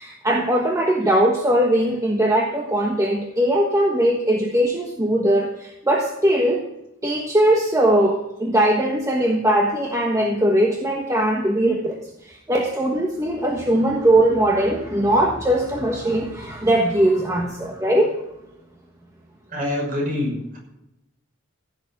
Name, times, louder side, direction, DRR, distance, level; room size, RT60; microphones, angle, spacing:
voice 1, 0.0-6.6 7.0-18.1, right 1 dB, 15° right, 0 dB, 1.3 m, -20 dB
voice 2, 19.5-20.6, left 1 dB, 40° right, -1 dB, 6.0 m, -25 dB
15.5 x 7.1 x 7.8 m, 0.87 s
head